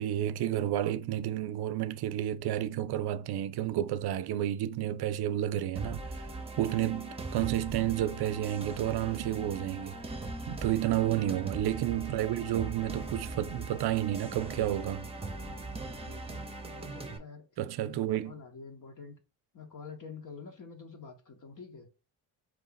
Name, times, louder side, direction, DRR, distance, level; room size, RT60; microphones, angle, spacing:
voice 1, 0.0-6.3 6.6-10.2 10.5-15.1 17.6-18.4, right 12 dB, 65° right, 0.5 m, -31 dB
sound 1, 5.8-17.2, right 2 dB, 15° right, 0.8 m, -40 dB
voice 2, 10.8-11.1 15.9-16.5 16.8-19.2 19.5-21.9, left 5 dB, 45° left, 0.9 m, -48 dB
4.6 x 2.5 x 4.0 m
cardioid pair, 75°, 42 cm